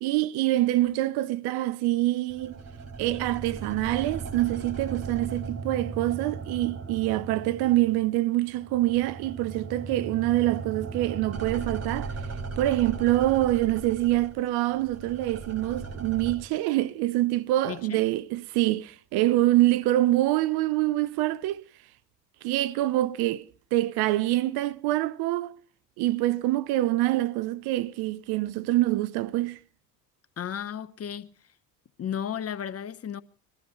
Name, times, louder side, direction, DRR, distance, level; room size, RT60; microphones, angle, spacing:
voice 1, 0.0-2.6 3.0-12.1 12.6-21.7 22.4-25.6 26.0-29.6, right 16 dB, 55° right, 0.8 m, -25 dB
sound 1, 2.3-8.2 8.5-16.4, right 4 dB, 35° right, 5.0 m, -37 dB
voice 2, 17.7-18.0 30.4-31.3 32.0-33.2, left 9 dB, 30° left, 1.0 m, -34 dB
21.5 x 14.0 x 4.6 m
hypercardioid pair, 60°, 46 cm